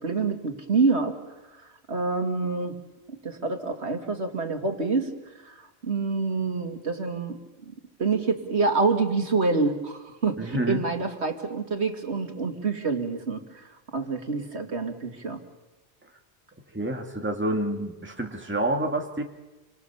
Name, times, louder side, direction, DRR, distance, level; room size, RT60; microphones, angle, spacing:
voice 1, 0.0-1.2 1.9-2.8 3.1-5.1 5.4-5.6 5.8-7.4 8.0-13.4 13.9-15.4, right 4 dB, 80° right, 5 dB, 2.8 m, -26 dB
voice 2, 10.4-10.8 16.7-19.2, right 1 dB, 10° right, 3 dB, 2.1 m, -28 dB
28.5 x 25.0 x 7.1 m, 1.1 s
omnidirectional pair, 1.1 m